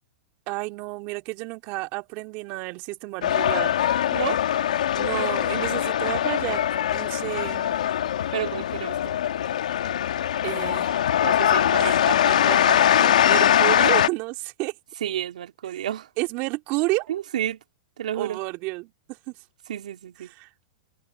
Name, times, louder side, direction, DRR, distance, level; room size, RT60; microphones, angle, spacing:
voice 1, 0.5-3.8 4.9-7.8 10.4-11.1 11.8-12.0 12.9-14.7 15.7-15.8 16.2-17.1 18.1-19.4 20.2-20.5, right 24 dB, 45° right, 2.5 m, -31 dB
sound 1, 3.2-14.1, left 10 dB, 80° left, 2.0 m, -22 dB
voice 2, 8.3-9.0 11.2-12.8 15.0-16.1 17.1-17.6 18.0-18.4 19.7-20.3, right 11 dB, 80° right, 2.1 m, -31 dB
open air
hypercardioid pair, 125°, 4 cm